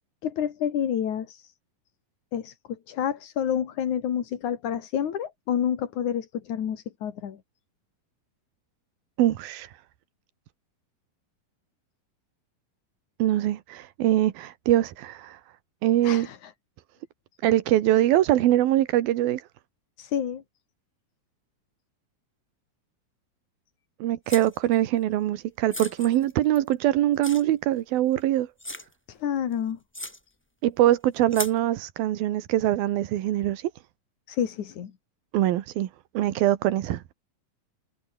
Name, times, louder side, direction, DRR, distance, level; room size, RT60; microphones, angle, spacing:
voice 1, 0.2-1.5 2.3-7.4 16.0-16.5 20.0-20.4 29.1-29.8 34.3-34.9, left 9 dB, 60° left, 3.3 m, -29 dB
voice 2, 9.2-9.7 13.2-15.4 15.8-16.3 17.4-19.5 24.0-28.5 30.6-33.7 35.3-35.9 36.1-37.1, right 13 dB, 85° right, 3.2 m, -23 dB
sound 1, 24.3-24.8 25.7-26.7 27.2-27.4 28.1-28.2 28.6-28.9 29.5-29.6 29.9-30.2 31.3-31.6, left 1 dB, 10° left, 0.5 m, -36 dB
omnidirectional pair, 4.1 m